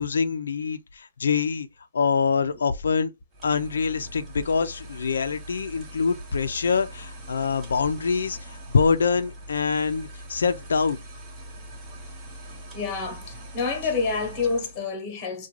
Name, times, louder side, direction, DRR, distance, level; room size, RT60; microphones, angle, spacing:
voice 1, 0.0-1.7 1.9-3.1 3.4-11.0, left 5 dB, 90° left, 0.4 m, -25 dB
sound 1, 3.3-14.9, right 1 dB, 10° right, 0.6 m, -42 dB
voice 2, 12.7-15.5, left 4 dB, 15° left, 0.9 m, -28 dB
3.6 x 2.2 x 3.0 m
hypercardioid pair, 180°, 0 cm